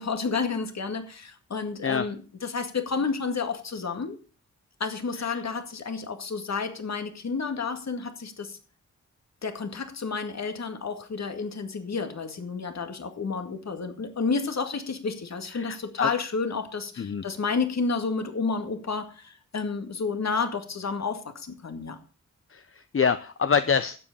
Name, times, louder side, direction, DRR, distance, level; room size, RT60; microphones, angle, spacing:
voice 1, 0.0-4.2 4.8-8.6 9.4-22.0, left 4 dB, 60° left, 7 dB, 2.1 m, -30 dB
voice 2, 15.5-16.1 17.0-17.2 22.5-24.0, left 6 dB, 45° left, 11 dB, 0.8 m, -26 dB
12.0 x 7.8 x 7.0 m, 0.38 s
cardioid pair, 60°, 30 cm